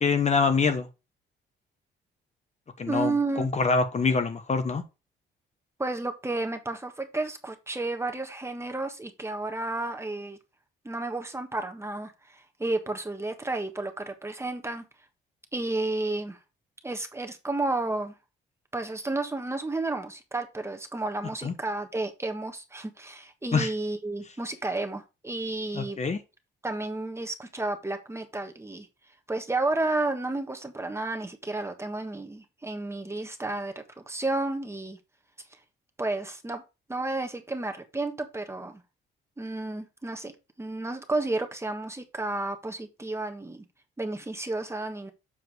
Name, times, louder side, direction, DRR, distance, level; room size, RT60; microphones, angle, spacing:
voice 1, 0.0-0.9 2.8-4.8 21.4-21.5 23.5-23.7 25.7-26.2, left 4 dB, 35° left, 1.2 m, -25 dB
voice 2, 2.9-3.5 5.8-10.4 10.8-14.8 15.5-16.4 16.8-18.1 18.7-26.0 26.6-28.9 29.3-35.0 36.0-36.6 36.9-38.8 39.4-40.3 40.6-43.6 44.0-45.1, right 2 dB, 15° right, 1.4 m, -32 dB
7.4 x 4.5 x 4.7 m
cardioid pair, 90°, 20 cm